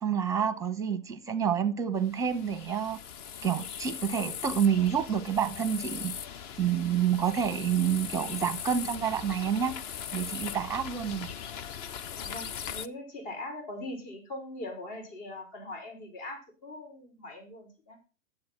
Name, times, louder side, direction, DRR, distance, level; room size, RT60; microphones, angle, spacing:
voice 1, 0.0-3.0 3.4-6.1 6.6-9.8 10.1-11.3, right 8 dB, 10° right, 0.8 m, -28 dB
sound 1, 2.0-12.9, left 8 dB, 30° left, 0.5 m, -40 dB
voice 2, 12.2-18.0, left 1 dB, 50° left, 5.4 m, -41 dB
10.5 x 7.7 x 5.9 m
hypercardioid pair, 120°, 38 cm